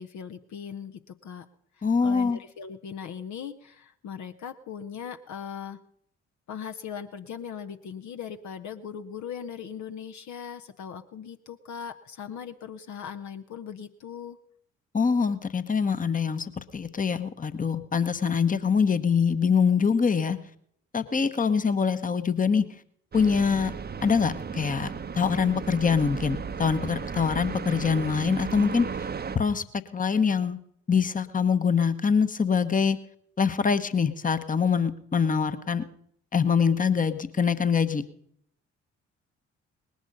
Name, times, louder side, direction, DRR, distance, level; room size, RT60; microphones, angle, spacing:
voice 1, 0.0-1.4 1.8-5.8 6.5-14.4, left 7 dB, 50° left, 8 dB, 0.9 m, -39 dB
voice 2, 1.8-2.4 14.9-20.4 20.9-22.6 23.1-23.7 24.0-29.1 29.3-29.6 29.9-30.6 30.9-33.0 33.4-35.8 36.3-38.0, left 6 dB, 20° left, 11 dB, 1.1 m, -24 dB
sound 1, 23.1-29.4, right 6 dB, 25° right, 0.9 m, -35 dB
19.5 x 10.5 x 5.3 m, 0.68 s
figure-of-eight pair, 45°, 36 cm